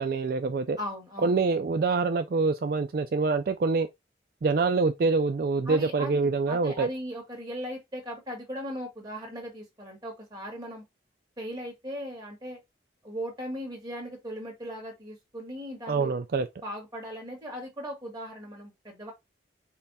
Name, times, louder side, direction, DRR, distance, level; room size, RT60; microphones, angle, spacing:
voice 1, 0.0-0.8 1.2-3.9 4.4-6.9 15.9-16.5, right 4 dB, 55° right, 0.3 m, -25 dB
voice 2, 0.8-1.4 5.7-10.8 11.4-12.6 13.0-16.1 16.6-19.1, equal, 20° right, 1.8 m, -38 dB
5.6 x 2.2 x 4.1 m
head